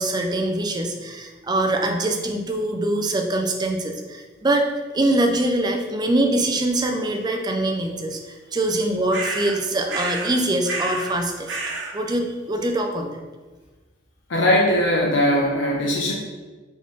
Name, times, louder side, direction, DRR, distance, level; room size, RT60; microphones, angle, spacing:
voice 1, 0.0-13.2, right 1 dB, 20° right, 3 dB, 0.4 m, -23 dB
sound 1, 9.1-9.6 9.9-10.4 10.7-11.1 11.5-11.9, right 3 dB, 70° right, 0.7 m, -29 dB
voice 2, 14.3-16.1, left 1 dB, 85° left, -2 dB, 0.6 m, -20 dB
4.4 x 3.4 x 3.1 m, 1.3 s
head